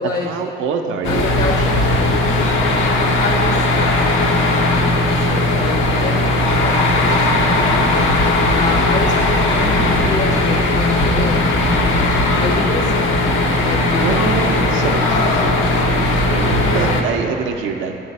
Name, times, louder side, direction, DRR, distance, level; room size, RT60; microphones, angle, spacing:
voice 1, 0.0-1.3 14.0-18.0, right 6 dB, 80° right, 4 dB, 0.4 m, -25 dB
sound 1, 1.0-17.0, left 2 dB, 90° left, 0.6 m, -17 dB
voice 2, 1.0-2.2 3.0-8.1 8.5-11.5 12.4-13.0 13.6-14.1 14.6-15.1, left 3 dB, 40° left, 4 dB, 0.5 m, -27 dB
8.3 x 3.9 x 5.2 m, 2.9 s
cardioid pair, 90°, 20 cm